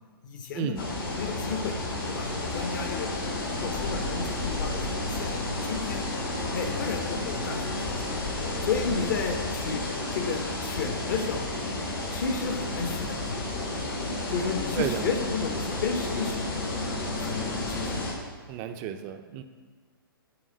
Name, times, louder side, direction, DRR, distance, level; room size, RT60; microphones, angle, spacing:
voice 1, 0.2-1.7 2.1-3.1 3.5-6.0 6.5-8.0 8.6-9.8 10.1-11.5 12.1-13.4 14.3-16.4 17.2-17.9, left 5 dB, 55° left, 4 dB, 1.0 m, -32 dB
sound 1, 0.8-18.1, left 2 dB, 70° left, 2.0 m, -31 dB
voice 2, 18.5-19.4, right 10 dB, 25° right, 8 dB, 0.4 m, -32 dB
6.3 x 3.6 x 5.1 m, 1.5 s
hypercardioid pair, 135°, 12 cm